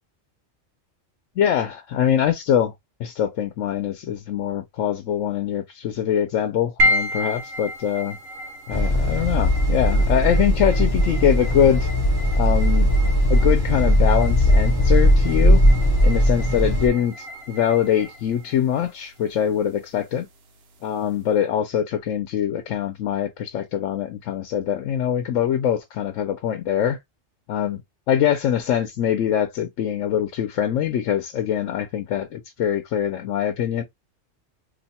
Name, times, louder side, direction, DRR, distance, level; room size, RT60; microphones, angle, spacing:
voice 1, 1.4-2.7 3.0-8.2 8.7-11.9 12.4-12.9 13.3-15.6 16.0-20.3 20.8-27.0 27.5-27.8 28.1-33.8, left 9 dB, 80° left, 1.0 m, -23 dB
sound 1, 6.8-21.3, left 1 dB, 60° right, 0.9 m, -32 dB
sound 2, 8.7-16.9, equal, 25° left, 0.6 m, -18 dB
2.8 x 2.1 x 4.1 m
omnidirectional pair, 1.3 m